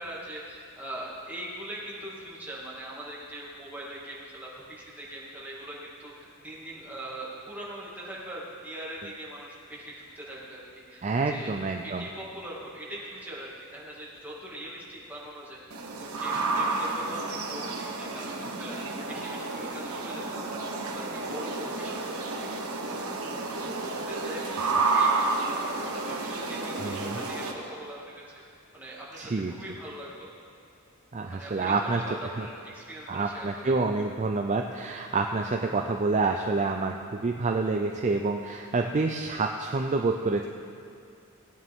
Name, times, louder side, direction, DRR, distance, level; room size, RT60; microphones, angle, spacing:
voice 1, 0.0-11.6 11.8-15.6 16.0-18.8 19.1-23.3 23.6-25.4 25.8-28.2 28.7-30.3 31.3-33.8, right 1 dB, 10° right, -6 dB, 2.2 m, -42 dB
voice 2, 11.0-12.1 26.8-27.2 29.2-29.5 31.1-32.0 32.4-32.5 33.1-40.5, right 3 dB, 30° right, 3 dB, 0.4 m, -28 dB
sound 1, 15.7-27.5, right 3 dB, 75° right, 1.3 m, -30 dB
18.5 x 9.4 x 3.6 m, 2.4 s
head